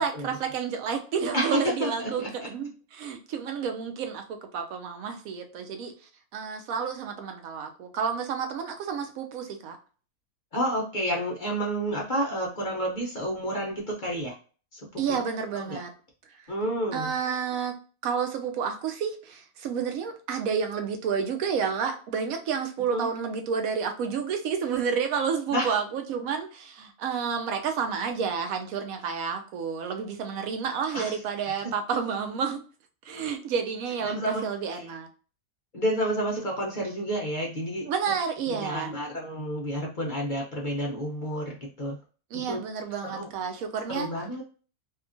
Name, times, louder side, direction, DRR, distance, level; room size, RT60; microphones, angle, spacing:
voice 1, 0.0-5.9 6.3-9.8 15.0-15.9 16.9-17.7 18.0-32.6 33.0-35.1 37.9-38.9 42.3-44.1, right 6 dB, 75° right, 5 dB, 1.0 m, -30 dB
voice 2, 1.3-2.5 10.5-14.3 14.7-14.8 15.1-15.2 15.5-15.8 16.5-17.2 22.9-23.1 25.5-25.8 30.9-31.2 31.6-31.7 34.0-34.4 34.7-34.8 35.7-37.9 38.5-42.0 42.3-42.6 43.0-43.3 43.9-44.4, equal, 45° left, -2 dB, 0.6 m, -30 dB
2.8 x 2.4 x 2.5 m, 0.39 s
omnidirectional pair, 1.5 m